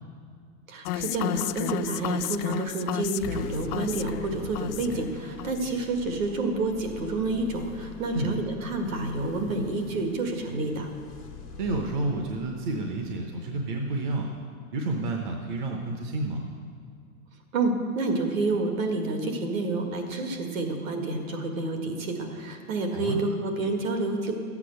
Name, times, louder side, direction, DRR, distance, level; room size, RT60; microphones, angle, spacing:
voice 1, 0.7-10.9 17.5-24.3, right 2 dB, 65° right, 4 dB, 2.0 m, -29 dB
sound 1, 0.9-5.1 5.4-5.8, left 12 dB, 85° left, 0.5 m, -32 dB
sound 2, 3.2-14.1, left 3 dB, ahead, 0.3 m, -44 dB
voice 2, 11.6-14.3 14.7-16.4 22.9-23.2, right 2 dB, 35° right, 3 dB, 0.8 m, -30 dB
13.5 x 8.3 x 6.7 m, 2.2 s
supercardioid pair, 175°, 44 cm